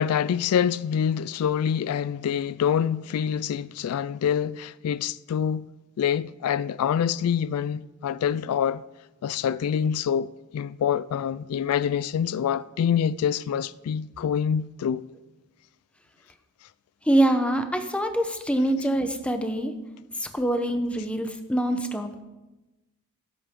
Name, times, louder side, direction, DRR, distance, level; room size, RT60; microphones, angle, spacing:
voice 1, 0.0-5.6 6.0-8.8 9.2-15.0, left 8 dB, 80° left, 0.3 m, -26 dB
voice 2, 17.1-19.7 20.2-22.2, right 1 dB, 5° left, 0.8 m, -24 dB
17.0 x 8.3 x 3.7 m
head